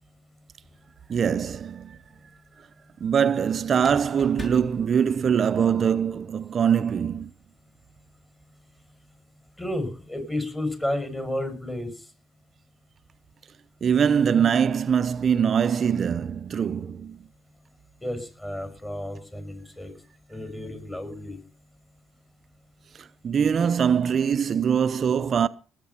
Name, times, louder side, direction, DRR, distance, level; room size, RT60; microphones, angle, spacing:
sound 1, 0.6-1.3 3.7-5.7, left 2 dB, 30° left, 6.6 m, -43 dB
voice 1, 1.1-2.0 3.0-7.3 13.8-17.2 23.0-25.5, right 7 dB, 50° right, 0.7 m, -23 dB
voice 2, 9.6-12.1 18.0-19.9 20.3-21.4, left 1 dB, 15° left, 6.0 m, -32 dB
19.0 x 8.3 x 5.7 m
cardioid pair, 80°, 0 cm